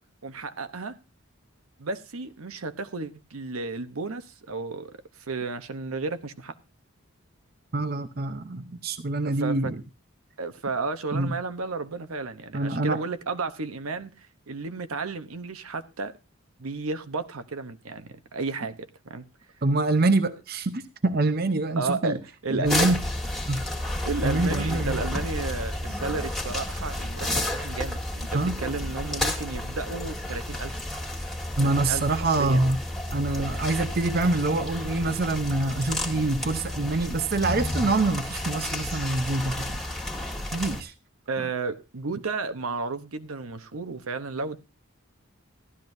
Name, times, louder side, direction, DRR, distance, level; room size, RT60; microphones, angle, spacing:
voice 1, 0.2-0.9 1.8-6.5 9.3-9.7 10.4-16.1 16.6-19.2 21.8-22.7 24.0-30.7 31.6-32.1 32.4-32.6 41.3-44.6, right 3 dB, 75° right, 0.8 m, -33 dB
voice 2, 7.7-9.8 11.1-11.3 12.5-13.0 19.6-22.2 22.5-23.0 23.5-23.6 24.2-25.0 27.3-27.5 28.3-28.6 31.6-32.8 33.1-39.8 40.5-40.9, right 2 dB, 45° right, 0.7 m, -25 dB
sound 1, 22.6-40.8, left 1 dB, ahead, 1.7 m, -31 dB
15.0 x 12.5 x 2.6 m
head